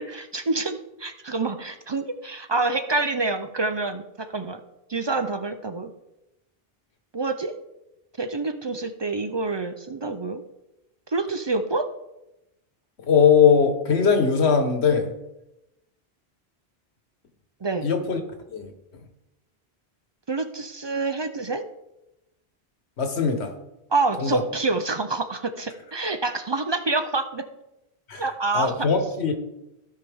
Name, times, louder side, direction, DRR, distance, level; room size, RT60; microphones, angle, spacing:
voice 1, 0.0-4.6 4.9-5.9 7.1-7.5 8.2-10.4 11.1-11.9 17.6-17.9 20.3-21.6 23.9-27.5 28.2-28.9, right 3 dB, 40° right, 9 dB, 0.4 m, -27 dB
voice 2, 13.1-15.1 17.8-18.2 18.5-18.7 23.0-23.5 24.2-24.4 28.1-28.2 28.5-29.3, left 6 dB, 80° left, 5 dB, 1.5 m, -20 dB
15.5 x 5.5 x 3.5 m, 0.93 s
omnidirectional pair, 1.1 m